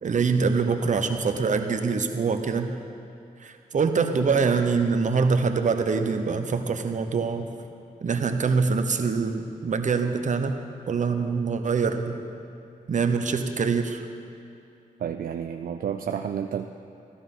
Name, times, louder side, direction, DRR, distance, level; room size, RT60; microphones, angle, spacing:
voice 1, 0.0-2.7 3.4-7.5 8.0-10.6 10.9-12.2 12.9-14.0, right 5 dB, 60° right, 7 dB, 1.0 m, -24 dB
voice 2, 15.0-16.7, right 8 dB, 75° right, 6 dB, 0.5 m, -30 dB
14.5 x 12.0 x 5.5 m, 2.6 s
cardioid pair, 75°, 15 cm